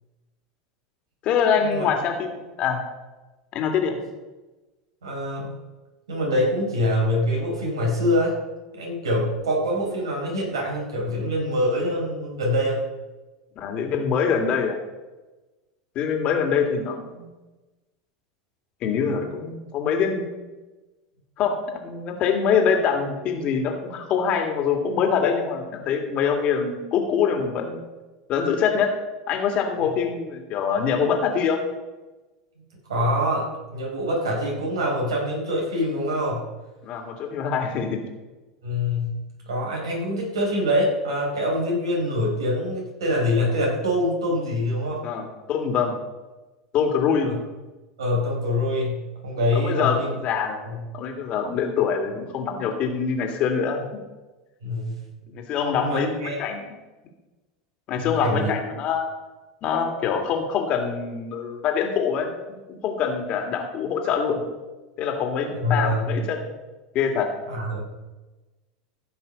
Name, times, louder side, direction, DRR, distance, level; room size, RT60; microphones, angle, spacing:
voice 1, 1.2-2.8 3.5-4.0 13.6-14.8 16.0-17.3 18.8-20.3 21.4-27.8 28.3-28.9 29.3-31.6 36.8-38.0 45.0-45.9 46.7-47.4 49.5-50.6 50.9-53.9 55.3-56.7 57.9-59.1 59.6-62.3 62.8-64.4 65.0-66.5 66.9-67.3, left 6 dB, 45° left, 4 dB, 2.3 m, -24 dB
voice 2, 5.0-5.6 6.1-8.4 8.7-12.8 29.8-29.9 32.9-36.4 38.6-39.2 39.5-45.0 47.2-47.3 48.0-50.1 50.6-50.8 54.6-55.0 55.8-56.4 58.0-58.5 65.5-66.2 67.5-67.8, left 1 dB, 80° right, -2 dB, 4.3 m, -25 dB
15.0 x 6.0 x 5.3 m, 1.1 s
hypercardioid pair, 90°, 3 cm